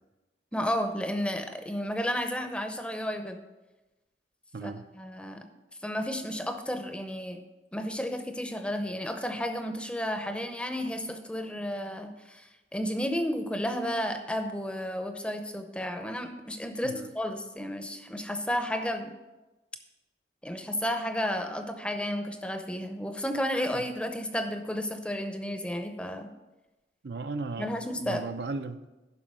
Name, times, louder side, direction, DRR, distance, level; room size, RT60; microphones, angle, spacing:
voice 1, 0.5-3.4 4.6-5.5 5.8-7.4 7.7-19.1 20.4-26.3 27.6-28.3, equal, 5° left, 7 dB, 0.7 m, -32 dB
voice 2, 4.5-4.9 16.8-17.1 23.7-23.9 27.0-28.8, right 3 dB, 65° right, 9 dB, 0.6 m, -36 dB
10.5 x 5.9 x 6.1 m, 1.1 s
head